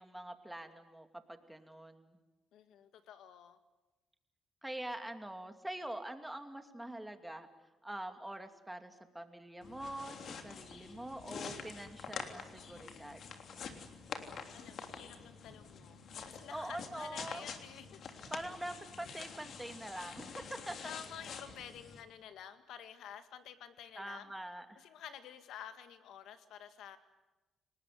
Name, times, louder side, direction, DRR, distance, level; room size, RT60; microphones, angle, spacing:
voice 1, 0.0-2.2 4.6-7.5 7.8-13.2 16.5-17.4 18.3-20.9 23.9-24.8, right 1 dB, 5° right, 6 dB, 2.7 m, -44 dB
voice 2, 2.5-3.6 14.5-18.0 18.7-18.8 20.8-24.3 24.8-27.0, left 9 dB, 80° left, 9 dB, 2.0 m, -51 dB
sound 1, 9.6-22.0, left 6 dB, 60° left, 3.2 m, -47 dB
29.5 x 19.5 x 9.5 m, 1.1 s
cardioid pair, 90°, 0 cm